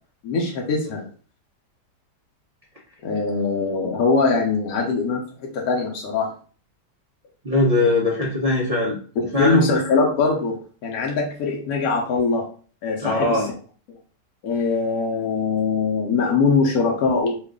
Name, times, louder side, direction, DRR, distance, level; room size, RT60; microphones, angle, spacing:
voice 1, 0.2-1.0 3.0-6.3 9.4-12.5 12.8-13.5 14.4-17.4, left 4 dB, 65° left, -1 dB, 1.0 m, -22 dB
voice 2, 7.4-9.0 9.3-9.7 13.0-13.5, left 2 dB, 70° right, -6 dB, 0.3 m, -20 dB
3.1 x 2.3 x 3.5 m, 0.41 s
omnidirectional pair, 1.8 m